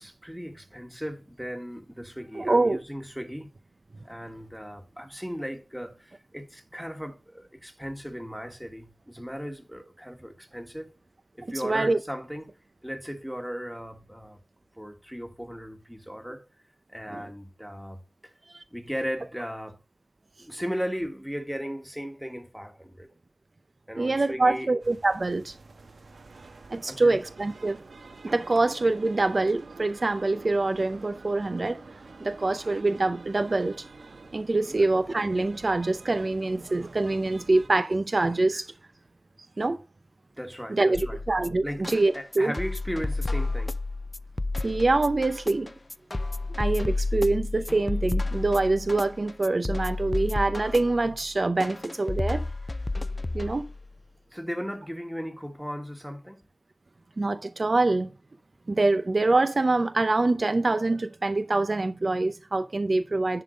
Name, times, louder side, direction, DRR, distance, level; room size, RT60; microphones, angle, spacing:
voice 1, 0.0-3.5 4.0-10.9 11.3-12.5 12.8-14.4 14.8-16.4 16.9-18.3 18.7-19.8 20.4-23.1 23.9-24.7 26.9-27.2 34.7-34.9 40.4-41.2 41.6-43.8 54.3-56.4, equal, ahead, 1.5 m, -36 dB
voice 2, 2.3-2.8 11.4-12.0 17.1-17.3 18.5-18.6 24.0-25.6 26.7-27.8 28.2-31.8 32.2-33.9 34.3-38.7 39.6-39.8 40.7-42.5 44.6-45.7 46.6-52.4 53.3-53.6 57.2-58.1 58.7-63.4, right 2 dB, 50° right, 0.5 m, -25 dB
sound 1, 24.8-37.7, right 3 dB, 90° right, 1.1 m, -48 dB
sound 2, 40.9-53.9, left 2 dB, 35° left, 0.3 m, -31 dB
10.5 x 3.7 x 5.1 m
wide cardioid pair, 70°, 0 cm